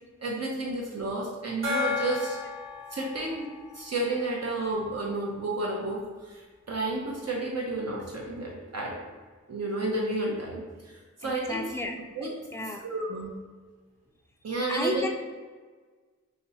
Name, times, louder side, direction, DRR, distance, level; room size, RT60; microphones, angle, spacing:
voice 1, 0.2-2.4 2.9-3.5 3.7-9.0 9.5-11.6 12.2-12.3 12.8-13.3 14.4-15.0, right 2 dB, 60° right, -3 dB, 0.6 m, -31 dB
Gong, 1.6-4.9, left 4 dB, 45° right, 1.2 m, -34 dB
voice 2, 11.2-12.0 12.5-12.8 14.7-15.2, left 1 dB, 10° left, 3 dB, 0.4 m, -32 dB
4.8 x 2.0 x 2.7 m, 1.4 s
wide cardioid pair, 45°, 29 cm